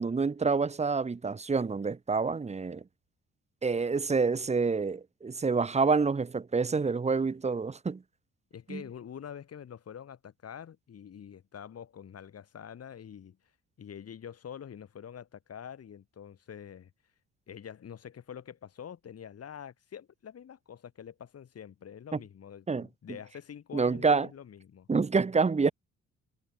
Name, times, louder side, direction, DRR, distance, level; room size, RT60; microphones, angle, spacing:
voice 1, 0.0-2.8 3.6-8.0 8.7-8.8 22.1-22.2 22.7-22.9 23.7-24.3 24.9-25.7, right 4 dB, 20° right, 1.1 m, -27 dB
voice 2, 8.5-13.4 13.8-16.9 17.5-24.9, left 8 dB, 55° left, 3.9 m, -46 dB
cardioid pair, 90°, 30 cm